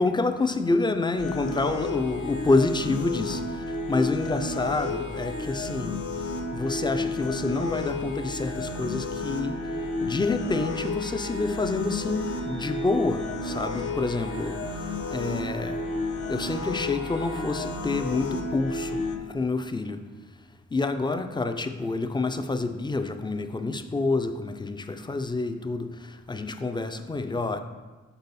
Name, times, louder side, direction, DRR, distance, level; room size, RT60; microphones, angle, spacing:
voice 1, 0.0-6.0 6.5-15.8 16.3-20.0 20.7-27.6, left 3 dB, 15° left, 0.3 m, -28 dB
sound 1, 1.2-19.2, left 2 dB, 70° left, 0.8 m, -32 dB
sound 2, 8.4-18.2, left 2 dB, 40° left, 0.9 m, -44 dB
6.8 x 4.4 x 4.1 m
wide cardioid pair, 110°, 31 cm